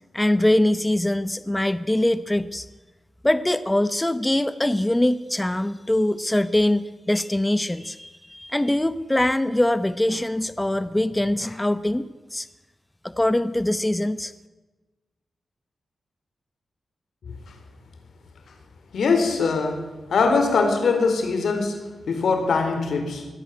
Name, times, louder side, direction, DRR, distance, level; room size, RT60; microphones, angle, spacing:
voice 1, 0.1-2.7 3.2-12.5 13.0-14.3, left 1 dB, 10° left, 0.7 m, -23 dB
voice 2, 17.2-17.6 18.9-23.3, left 4 dB, 80° left, 4.2 m, -22 dB
22.5 x 16.5 x 9.4 m
wide cardioid pair, 150°, 0 cm